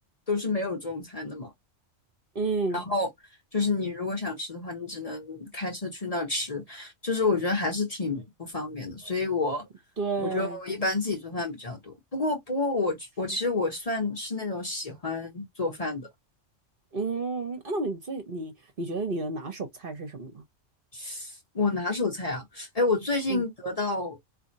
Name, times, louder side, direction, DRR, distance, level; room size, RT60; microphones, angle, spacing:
voice 1, 0.3-1.5 2.7-3.1 3.5-9.6 10.2-16.1 20.9-24.2, left 3 dB, 30° left, 1.0 m, -29 dB
voice 2, 2.3-2.8 10.0-10.6 16.9-18.5 18.8-20.4 23.3-23.4, right 3 dB, 50° right, 1.0 m, -31 dB
4.0 x 2.6 x 2.7 m
omnidirectional pair, 1.3 m